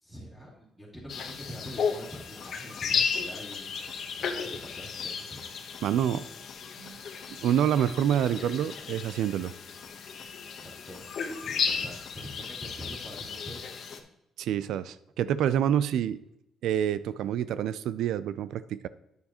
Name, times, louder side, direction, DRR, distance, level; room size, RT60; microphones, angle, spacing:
voice 1, 0.0-3.8 4.1-5.4 10.6-13.7 13.9-14.0, equal, ahead, -10 dB, 2.8 m, -45 dB
sound 1, 1.1-14.0, left 6 dB, 65° left, 0.9 m, -34 dB
voice 2, 5.8-6.2 6.8-7.0 7.3-9.5 14.4-16.2 16.6-18.9, right 10 dB, 80° right, 16 dB, 0.3 m, -27 dB
9.5 x 6.5 x 2.9 m, 0.84 s
cardioid pair, 90°, 0 cm